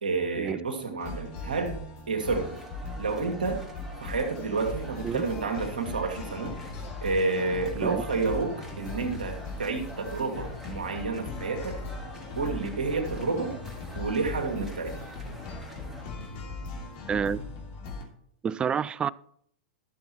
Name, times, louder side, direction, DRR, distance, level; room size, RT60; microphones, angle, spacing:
voice 1, 0.0-1.8 2.1-2.5 3.0-3.6 4.0-6.6 7.0-11.8 12.4-13.6 14.0-15.0, right 3 dB, 75° right, 2.0 m, -30 dB
sound 1, 1.0-18.0, left 3 dB, 50° left, 2.8 m, -39 dB
sound 2, 2.2-16.0, equal, ahead, 3.2 m, -47 dB
voice 2, 17.1-17.4 18.4-19.1, right 7 dB, 20° right, 0.3 m, -28 dB
12.5 x 7.1 x 4.3 m
figure-of-eight pair, 100°, 5 cm